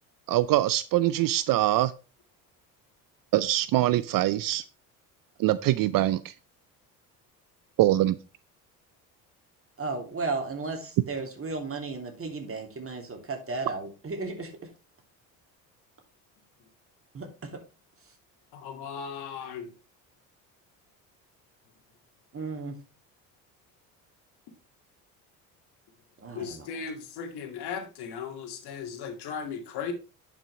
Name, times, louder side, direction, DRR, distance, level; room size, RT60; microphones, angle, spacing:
voice 1, 0.3-1.9 3.3-4.6 5.4-6.3 7.8-8.2, right 14 dB, 55° right, 16 dB, 0.6 m, -23 dB
voice 2, 9.8-14.5 17.1-17.3 22.3-22.8 26.2-26.7, right 3 dB, 30° right, 4 dB, 3.0 m, -34 dB
voice 3, 18.5-19.7 26.3-29.9, left 6 dB, 65° left, 6 dB, 2.2 m, -37 dB
10.5 x 6.0 x 3.2 m, 0.32 s
hypercardioid pair, 65°, 42 cm